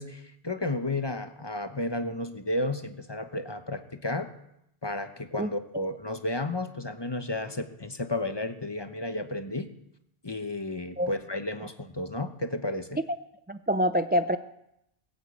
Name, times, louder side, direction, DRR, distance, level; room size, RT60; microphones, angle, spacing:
voice 1, 0.0-4.3 4.8-9.7 10.2-13.0, left 2 dB, 25° left, 9 dB, 1.0 m, -32 dB
voice 2, 13.5-14.4, equal, 15° right, 10 dB, 0.3 m, -25 dB
20.5 x 7.9 x 8.4 m, 0.81 s
omnidirectional pair, 1.0 m